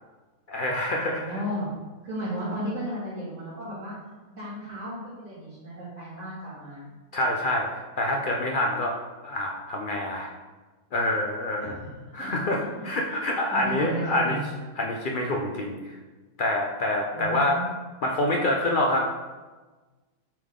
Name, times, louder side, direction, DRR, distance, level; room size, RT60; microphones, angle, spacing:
voice 1, 0.5-1.2 7.1-7.7 8.0-9.0 9.2-10.3 10.9-11.8 12.1-14.4 14.8-16.0 16.4-17.6 18.0-19.1, left 1 dB, 70° left, 0 dB, 0.5 m, -26 dB
voice 2, 1.1-1.7 2.0-3.9 4.3-6.8 11.6-11.9 12.2-13.2 13.5-14.4 17.1-17.7, right 1 dB, 55° right, -13 dB, 2.2 m, -34 dB
7.3 x 3.6 x 3.6 m, 1.3 s
omnidirectional pair, 1.6 m